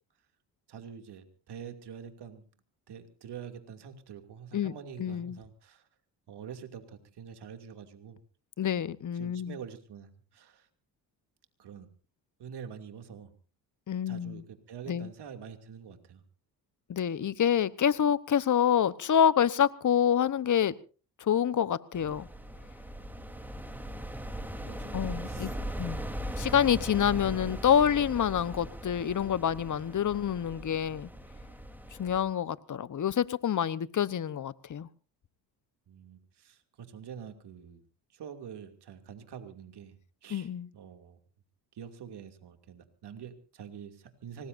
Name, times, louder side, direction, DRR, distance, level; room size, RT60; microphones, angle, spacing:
voice 1, 0.7-2.4 2.9-5.8 6.3-8.2 9.2-10.7 11.6-11.9 12.4-13.3 14.1-16.2 24.6-25.5 25.8-26.1 27.1-27.4 35.9-37.8 38.1-40.0 40.2-41.2 41.7-44.5, right 7 dB, 60° right, 6 dB, 2.8 m, -46 dB
voice 2, 5.0-5.4 8.6-9.6 13.9-14.4 14.9-15.1 16.9-20.7 21.2-22.3 24.9-26.0 26.4-31.1 32.0-34.9 40.3-40.7, left 9 dB, 40° left, 16 dB, 1.1 m, -27 dB
sound 1, 21.9-32.2, right 1 dB, 5° right, 3.5 m, -39 dB
25.0 x 19.5 x 2.7 m, 0.38 s
supercardioid pair, 65°, 44 cm